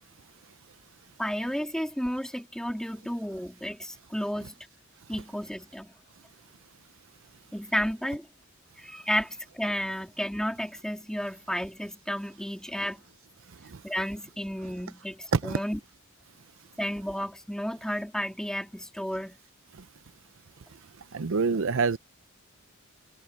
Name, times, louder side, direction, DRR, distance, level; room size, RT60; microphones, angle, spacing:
voice 1, 1.2-4.5 5.1-5.9 7.5-8.3 8.8-13.0 13.8-15.8 16.8-19.4, equal, 5° left, 2.9 m, -32 dB
voice 2, 21.1-22.0, right 4 dB, 65° right, 0.6 m, -25 dB
head